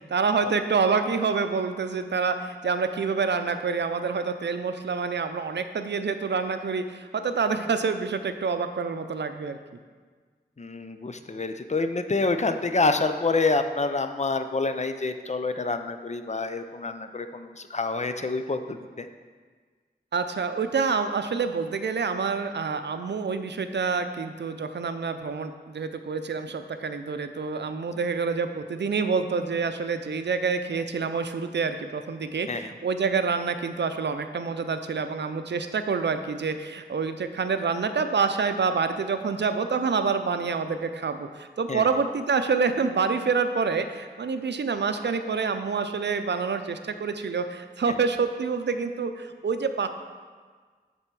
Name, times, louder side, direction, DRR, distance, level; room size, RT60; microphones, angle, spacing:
voice 1, 0.0-9.6 20.1-49.9, right 5 dB, 90° right, 9 dB, 0.5 m, -27 dB
voice 2, 10.6-19.1 32.5-32.7 41.7-41.9, left 3 dB, 40° left, 8 dB, 0.5 m, -27 dB
7.8 x 4.1 x 5.9 m, 1.5 s
wide cardioid pair, 45°, 18 cm